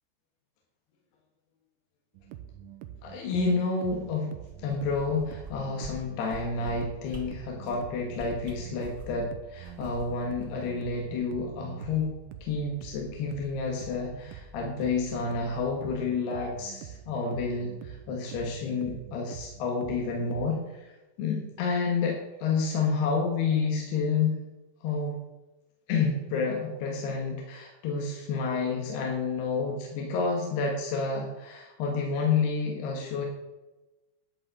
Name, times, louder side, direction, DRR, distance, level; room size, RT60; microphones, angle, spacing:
sound 1, 2.1-20.5, right 9 dB, 80° right, 2.4 m, -46 dB
voice 1, 3.0-4.3 4.6-12.1 12.4-24.5 24.8-25.2 25.9-33.3, left 4 dB, 70° left, 0 dB, 3.4 m, -29 dB
sound 2, 4.4-5.5 5.8-5.9 6.2-6.7 7.1-7.2 7.6-7.8 8.1-9.2 9.6-11.2 11.6-11.7, right 2 dB, 35° right, 1.7 m, -44 dB
11.5 x 5.5 x 7.7 m, 1.1 s
omnidirectional pair, 5.2 m